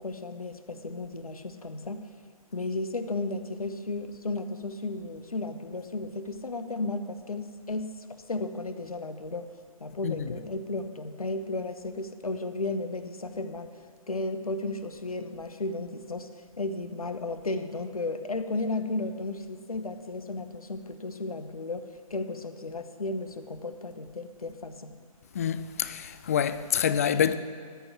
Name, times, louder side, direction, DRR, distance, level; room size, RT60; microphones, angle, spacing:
voice 1, 0.0-2.0 2.5-9.5 9.8-13.7 14.1-16.3 16.6-24.9, left 2 dB, 75° left, 1.0 m, -34 dB
voice 2, 10.0-10.3 25.3-27.4, left 8 dB, 25° left, 0.3 m, -27 dB
13.5 x 5.7 x 7.7 m
figure-of-eight pair, 135°, 19 cm